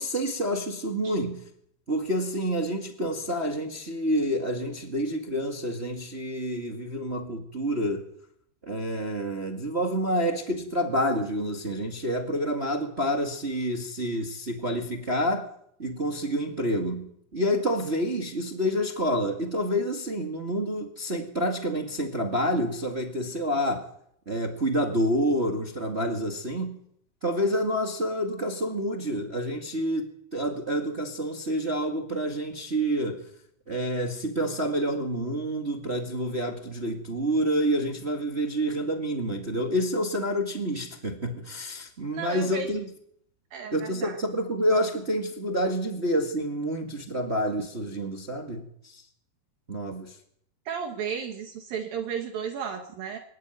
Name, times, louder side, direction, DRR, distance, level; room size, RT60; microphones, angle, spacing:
voice 1, 0.0-1.4 1.9-8.1 8.6-15.5 15.8-23.9 24.2-26.8 27.2-33.3 33.7-42.9 43.7-49.0 49.7-50.2, equal, 35° right, 1.1 m, -28 dB
voice 2, 42.1-42.7 43.5-44.2 50.7-53.2, right 6 dB, 65° right, 3.4 m, -34 dB
24.0 x 13.0 x 9.5 m
omnidirectional pair, 4.5 m